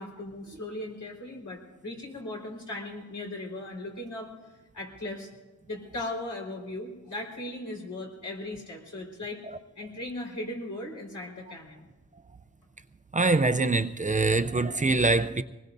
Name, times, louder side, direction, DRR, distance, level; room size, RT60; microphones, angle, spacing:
voice 1, 0.0-4.3 4.7-5.3 5.7-9.4 9.8-11.9, left 1 dB, 85° left, 4.4 m, -38 dB
voice 2, 13.1-15.4, right 3 dB, 25° right, 0.5 m, -24 dB
25.0 x 20.0 x 2.6 m
wide cardioid pair, 100°, 29 cm